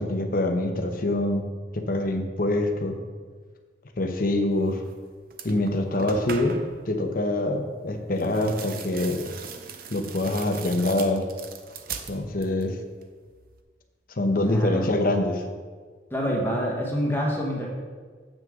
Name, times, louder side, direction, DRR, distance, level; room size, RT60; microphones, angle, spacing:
voice 1, 0.0-1.5 1.7-3.0 4.0-4.8 5.4-6.6 6.8-9.2 9.9-11.2 12.1-12.8 14.2-15.4, left 1 dB, 50° left, 5 dB, 0.9 m, -25 dB
sound 1, 4.8-5.0 5.3-6.8 8.1-12.7 13.0-13.6, right 6 dB, 50° right, 0.7 m, -40 dB
voice 2, 14.4-14.9 16.1-17.7, equal, 10° left, -2 dB, 1.3 m, -27 dB
9.2 x 7.6 x 3.7 m, 1.5 s
head